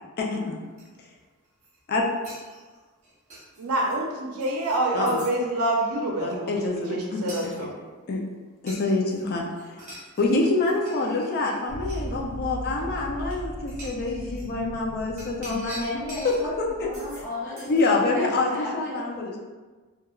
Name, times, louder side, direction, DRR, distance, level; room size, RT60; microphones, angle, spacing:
voice 1, 0.2-0.6 1.9-2.0 4.9-5.2 6.2-7.2 7.6-7.7 8.1-8.2 8.6-9.8 10.2-16.9 17.6-19.4, left 3 dB, 45° left, 0 dB, 0.4 m, -26 dB
sound 1, 0.8-0.9 1.4-1.8 2.2-4.0 4.4-4.8 5.1-5.3 7.3-7.6 8.7-9.2 9.5-10.4 10.7-12.1 13.0-13.1 13.7-14.5 15.2-16.4 16.9-17.2 17.6-17.9, right 1 dB, 30° right, 0.8 m, -44 dB
voice 2, 3.6-7.7, right 1 dB, 75° right, -1 dB, 0.5 m, -26 dB
sound 2, 11.7-17.2, equal, 80° left, 0.8 m, -38 dB
voice 3, 15.5-19.0, left 2 dB, 15° left, -11 dB, 1.0 m, -34 dB
3.0 x 2.3 x 2.3 m, 1.3 s
head